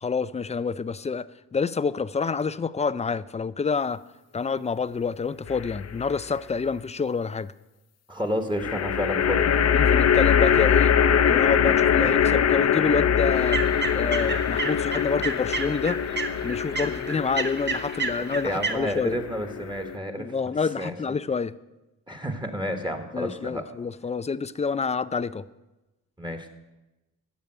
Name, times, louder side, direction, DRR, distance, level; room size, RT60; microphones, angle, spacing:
voice 1, 0.0-4.0 4.3-7.5 9.7-10.9 11.3-13.6 13.9-16.0 16.4-19.1 20.2-21.5 23.1-25.4, left 5 dB, 20° left, 16 dB, 0.4 m, -28 dB
sound 1, 5.5-6.1 8.6-20.0, left 8 dB, 45° left, 0.7 m, -23 dB
voice 2, 8.1-9.7 18.4-20.3 20.8-20.9 22.1-23.6 26.2-26.5, equal, 10° right, 5 dB, 1.4 m, -30 dB
sound 2, 13.3-18.7, right 4 dB, 30° right, 1.1 m, -31 dB
14.0 x 5.1 x 8.9 m, 1.0 s
cardioid pair, 85°, 36 cm